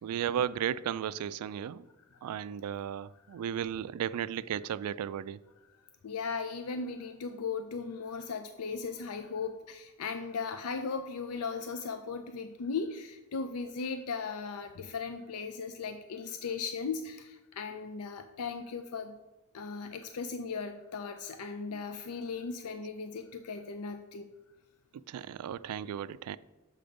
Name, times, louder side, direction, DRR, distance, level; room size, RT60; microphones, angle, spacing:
voice 1, 0.0-1.9 2.2-5.4 21.7-21.8 24.9-26.4, right 9 dB, 80° right, 0.3 m, -35 dB
voice 2, 2.0-2.3 3.1-3.5 4.2-4.3 6.0-19.2 19.5-24.3, left 5 dB, 70° left, 0.4 m, -37 dB
6.7 x 5.1 x 5.2 m
head